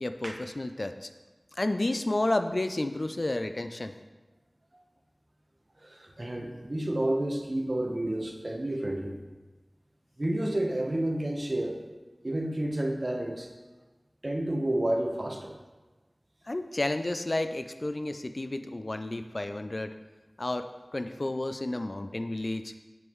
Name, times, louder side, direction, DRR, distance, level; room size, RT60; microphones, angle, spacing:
voice 1, 0.0-1.1 1.6-3.9 16.5-19.9 20.4-22.7, left 2 dB, 55° left, 9 dB, 0.4 m, -31 dB
voice 2, 5.8-9.2 10.2-11.8 12.2-13.5 14.2-15.5, right 1 dB, 45° right, 2 dB, 1.0 m, -30 dB
7.8 x 7.3 x 3.1 m, 1.2 s
wide cardioid pair, 40°, 0 cm